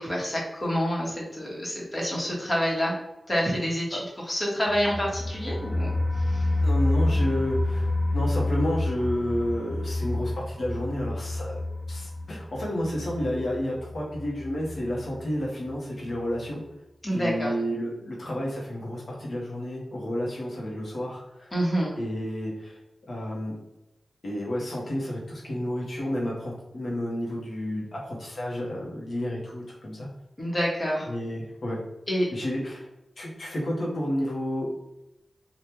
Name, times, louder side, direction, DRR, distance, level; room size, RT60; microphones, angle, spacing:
voice 1, 0.0-2.9 3.3-5.9 6.3-6.5 17.0-17.5 21.5-21.9 30.4-31.1 32.1-32.3, equal, 30° left, -4 dB, 1.3 m, -27 dB
sound 1, 4.7-15.4 15.7-15.8 16.1-16.2, left 2 dB, 10° left, 0.3 m, -29 dB
voice 2, 6.6-11.6 11.9-16.6 17.1-21.5 22.0-22.8 23.1-23.5 24.2-30.1 31.1-31.8 32.3-32.9 33.2-34.7, equal, 70° left, -3 dB, 1.0 m, -31 dB
3.5 x 2.4 x 2.9 m, 0.91 s
cardioid pair, 60°, 0 cm